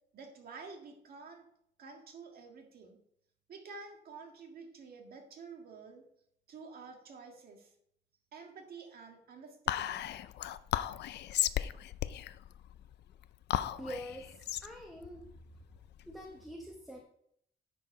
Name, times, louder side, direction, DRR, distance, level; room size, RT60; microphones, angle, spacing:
voice 1, 0.1-1.5 1.8-3.0 3.5-6.0 6.5-7.7 8.3-10.1, right 4 dB, 60° right, 2 dB, 1.8 m, -50 dB
Whispering, 9.7-16.3, left 12 dB, 80° left, 0.4 m, -36 dB
voice 2, 13.8-15.2 16.1-17.0, equal, ahead, 0 dB, 0.9 m, -45 dB
10.0 x 4.7 x 4.9 m, 0.71 s
wide cardioid pair, 170°, 17 cm